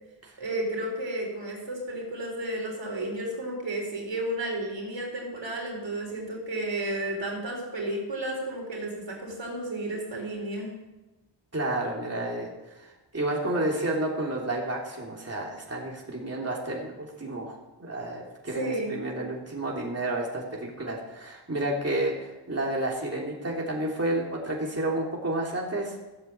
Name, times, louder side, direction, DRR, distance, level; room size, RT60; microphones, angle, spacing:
voice 1, 0.4-10.7 18.5-19.0, right 1 dB, 90° right, -1 dB, 4.2 m, -32 dB
voice 2, 11.5-26.0, right 1 dB, 35° right, -2 dB, 3.1 m, -31 dB
14.0 x 7.8 x 7.8 m, 1.0 s
wide cardioid pair, 60°, 43 cm